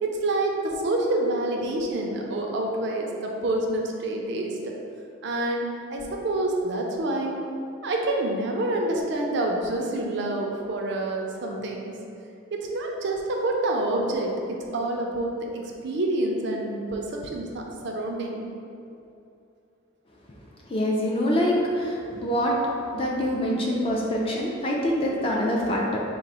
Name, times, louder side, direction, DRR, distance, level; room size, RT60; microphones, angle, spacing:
voice 1, 0.0-4.7 5.2-7.3 7.8-11.9 12.5-18.5, right 2 dB, 55° right, 0 dB, 0.4 m, -27 dB
voice 2, 20.7-22.5 22.9-26.0, equal, 25° left, -3 dB, 0.4 m, -25 dB
3.8 x 2.0 x 4.1 m, 2.7 s
head